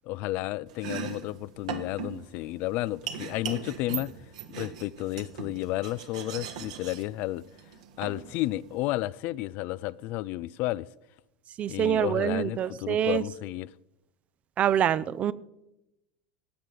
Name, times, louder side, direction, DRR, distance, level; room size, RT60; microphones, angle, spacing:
voice 1, 0.0-4.1 4.5-7.4 8.0-10.9 11.7-13.7, left 17 dB, 50° left, 0.3 m, -32 dB
Domestic sounds home sounds, 0.7-8.9, right 7 dB, 60° right, 1.4 m, -40 dB
voice 2, 11.6-13.2 14.6-15.3, right 10 dB, 35° right, 0.5 m, -25 dB
16.5 x 8.8 x 5.2 m
figure-of-eight pair, 75°, 4 cm